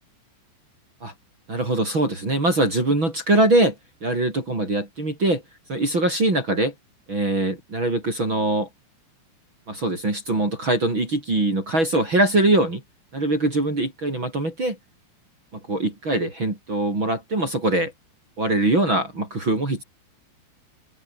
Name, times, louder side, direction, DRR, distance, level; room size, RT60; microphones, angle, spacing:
voice 1, 1.5-3.8 4.0-5.4 5.7-6.7 7.1-8.7 9.7-12.8 13.1-14.8 15.5-17.9 18.4-19.8, right 2 dB, 25° right, 5.2 m, -22 dB
omnidirectional pair, 6.0 m